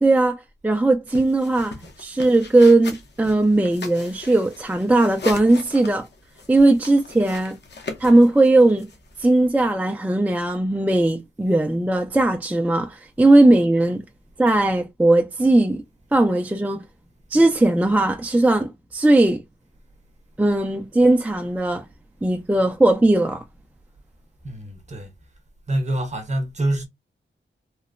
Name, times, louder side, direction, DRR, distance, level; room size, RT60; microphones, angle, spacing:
voice 1, 0.0-6.1 6.5-7.5 8.0-8.9 9.2-14.0 14.4-15.8 16.1-16.8 17.3-19.4 20.4-21.9 22.2-23.4, right 2 dB, 10° right, 0.3 m, -18 dB
sound 1, 1.1-9.3, left 3 dB, 60° left, 0.7 m, -39 dB
voice 2, 24.4-25.1 25.7-26.9, right 1 dB, 35° right, 0.7 m, -25 dB
2.9 x 2.0 x 2.4 m
wide cardioid pair, 115°, 20 cm